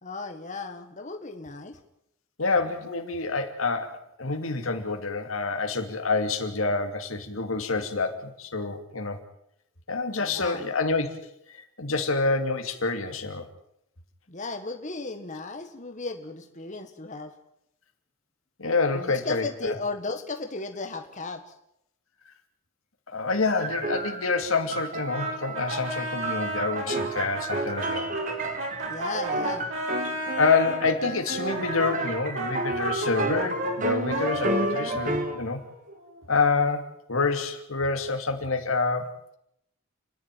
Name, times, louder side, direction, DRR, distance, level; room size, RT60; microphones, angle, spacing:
voice 1, 0.0-1.8 10.2-10.7 14.3-17.3 18.9-21.4 28.8-29.7, left 3 dB, 35° left, 5 dB, 1.6 m, -35 dB
voice 2, 2.4-9.2 9.9-11.1 11.5-13.4 18.6-19.7 23.1-28.1 30.4-35.6 36.3-39.2, left 4 dB, 80° left, 6 dB, 2.7 m, -27 dB
sound 1, 23.6-35.4, right 2 dB, 40° right, 1.9 m, -31 dB
Brass instrument, 25.1-30.8 31.4-36.2, right 1 dB, 70° right, 7.4 m, -33 dB
29.5 x 11.0 x 9.3 m, 0.78 s
head